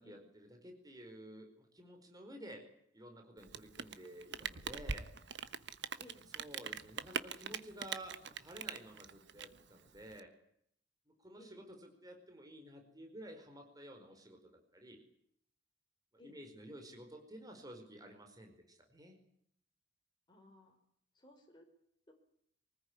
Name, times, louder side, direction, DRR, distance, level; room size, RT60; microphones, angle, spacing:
voice 1, 0.0-2.6 2.9-5.1 6.3-10.3 11.2-15.0 16.2-19.2, right 1 dB, 20° right, 4 dB, 4.9 m, -52 dB
Rain, 3.4-10.2, right 6 dB, 65° right, 1.3 m, -43 dB
voice 2, 6.0-6.3 11.3-11.7 16.2-16.4 20.3-20.8 21.1-21.7 22.1-22.2, left 1 dB, 25° left, 1 dB, 4.9 m, -59 dB
24.0 x 20.0 x 9.8 m, 0.71 s
head